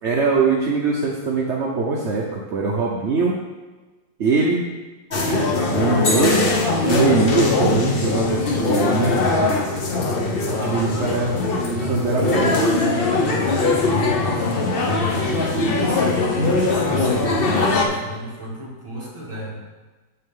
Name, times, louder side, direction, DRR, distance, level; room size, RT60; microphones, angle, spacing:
voice 1, 0.0-3.4 4.2-4.7 5.7-6.5 6.8-9.2 10.6-11.3 11.6-12.5 16.4-16.6, right 4 dB, 55° right, -2 dB, 0.8 m, -22 dB
sound 1, 5.1-17.9, left 3 dB, 45° left, 0.7 m, -21 dB
voice 2, 9.2-9.8 10.4-11.4 11.7-12.8 14.0-19.6, right 1 dB, 15° right, -5 dB, 2.1 m, -34 dB
8.6 x 6.9 x 3.8 m, 1.2 s
omnidirectional pair, 2.1 m